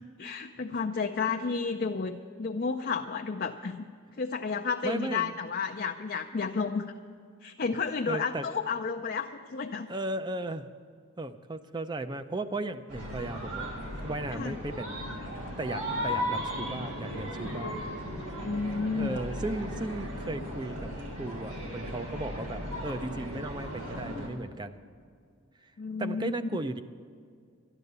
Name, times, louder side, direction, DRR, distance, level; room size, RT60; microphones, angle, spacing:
voice 1, 0.2-3.9 4.2-6.9 7.4-9.9 14.3-14.6 18.3-19.2 25.8-26.4, left 5 dB, 40° left, 4 dB, 0.4 m, -32 dB
voice 2, 4.8-5.3 8.1-8.5 9.9-10.7 11.2-13.7 14.0-15.0 15.6-17.8 18.9-24.8 25.6-25.7 26.0-26.8, right 2 dB, 20° right, 10 dB, 0.4 m, -36 dB
sound 1, 12.9-24.3, equal, 90° right, 3.5 m, -36 dB
13.0 x 11.0 x 6.8 m, 2.2 s
head